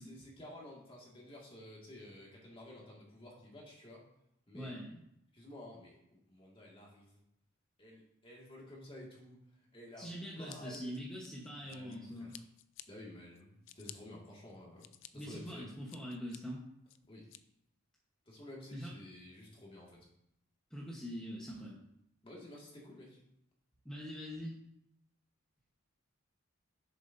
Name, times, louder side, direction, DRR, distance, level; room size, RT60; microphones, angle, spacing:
voice 1, 0.0-4.0 4.5-4.7 5.3-7.2 7.8-9.4 9.7-11.0 11.6-12.3 12.9-14.9 15.1-15.7 17.1-17.2 18.3-20.1 22.2-23.2, left 1 dB, 25° left, -3 dB, 2.0 m, -52 dB
voice 2, 4.5-5.0 10.0-12.3 15.1-16.6 18.7-18.9 20.7-21.8 23.8-24.5, equal, 5° left, -5 dB, 1.1 m, -43 dB
Scissors, 10.5-12.0 12.3-12.9 13.3-14.0 14.5-15.1 15.5-16.4 16.9-17.4, left 13 dB, 60° left, 0.4 m, -52 dB
10.5 x 7.2 x 2.7 m, 0.78 s
head